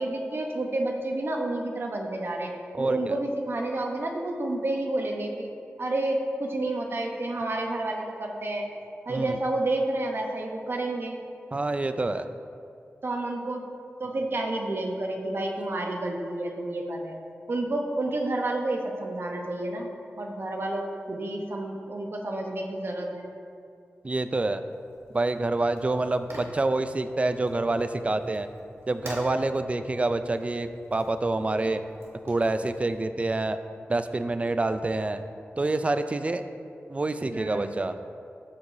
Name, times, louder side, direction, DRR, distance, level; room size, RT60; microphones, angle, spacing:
voice 1, 0.0-2.5 2.8-5.5 5.8-8.7 9.1-11.2 13.0-13.6 14.0-17.2 17.5-19.9 20.2-23.3 37.3-37.8, right 2 dB, 55° right, 2 dB, 0.9 m, -30 dB
voice 2, 2.7-3.2 9.1-9.4 11.5-12.3 24.0-24.6 25.1-28.5 28.9-31.8 32.2-33.6 33.9-35.2 35.6-36.4 36.9-38.0, right 2 dB, 30° right, 10 dB, 0.4 m, -27 dB
Fire, 24.7-33.0, right 1 dB, 70° right, 1.7 m, -47 dB
14.0 x 4.8 x 2.7 m, 2.4 s
wide cardioid pair, 80°, 5 cm